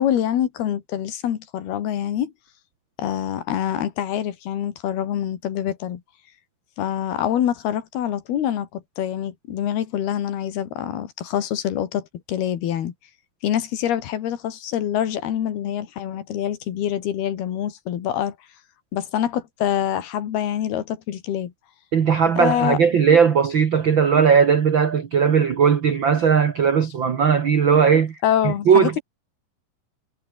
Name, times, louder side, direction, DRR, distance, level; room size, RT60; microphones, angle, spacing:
voice 1, 0.0-2.3 3.0-6.0 6.8-12.9 13.4-18.4 18.9-21.5 22.4-22.8 28.2-29.0, left 10 dB, 85° left, 4.1 m, -25 dB
voice 2, 21.9-28.2 28.4-29.0, right 7 dB, 65° right, 1.2 m, -18 dB
omnidirectional pair, 4.4 m